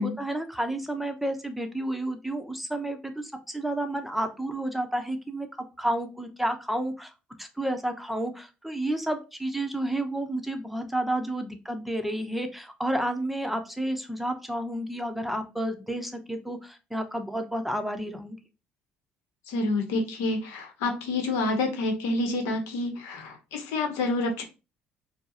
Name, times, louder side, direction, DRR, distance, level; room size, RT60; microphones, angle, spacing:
voice 1, 0.0-5.5 5.8-7.1 7.4-18.4, right 1 dB, 5° right, 6 dB, 0.7 m, -31 dB
voice 2, 19.5-24.4, left 2 dB, 75° left, 5 dB, 0.8 m, -28 dB
4.4 x 2.0 x 2.7 m, 0.30 s
hypercardioid pair, 60°, 5 cm